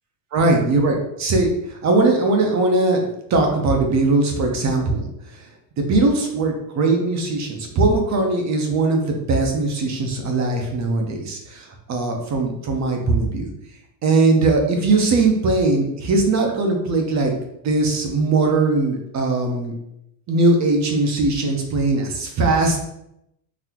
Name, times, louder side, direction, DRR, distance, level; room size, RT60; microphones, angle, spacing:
voice 1, 0.3-5.1 5.8-13.5 14.0-17.3 17.6-19.7 20.3-22.8, right 3 dB, 35° right, 2 dB, 0.8 m, -20 dB
4.0 x 2.8 x 2.9 m, 0.79 s
cardioid pair, 130°, 49 cm